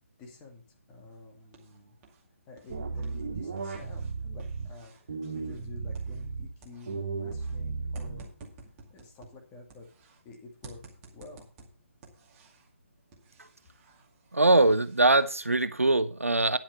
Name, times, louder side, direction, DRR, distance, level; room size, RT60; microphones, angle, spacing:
voice 1, 0.2-2.0 2.5-4.9 5.3-8.2 8.9-9.9 10.2-10.8 11.1-11.5, left 3 dB, 20° left, 1 dB, 2.5 m, -49 dB
sound 1, 1.1-2.2 2.5-6.4 6.6-10.2 10.6-12.7 13.1-15.2, right 3 dB, 20° right, 2.3 m, -54 dB
sound 2, 2.7-4.7 5.1-6.4 6.9-8.4, right 4 dB, 45° right, 2.9 m, -35 dB
voice 2, 14.3-16.6, right 2 dB, 85° right, 13 dB, 0.9 m, -22 dB
10.5 x 7.4 x 5.5 m, 0.36 s
figure-of-eight pair, 145°, 7 cm